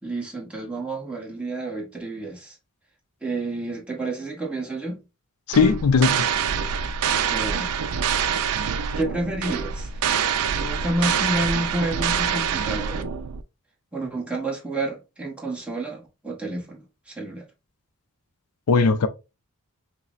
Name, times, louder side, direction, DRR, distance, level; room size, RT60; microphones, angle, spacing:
voice 1, 0.0-2.6 3.2-5.0 7.3-7.7 9.0-10.2 10.6-13.1 13.9-17.5, right 2 dB, 5° right, 1.0 m, -30 dB
voice 2, 5.5-6.3 18.7-19.1, left 4 dB, 80° left, 0.4 m, -18 dB
sound 1, 5.5-13.4, right 7 dB, 85° right, 0.4 m, -25 dB
5.5 x 2.0 x 2.4 m
head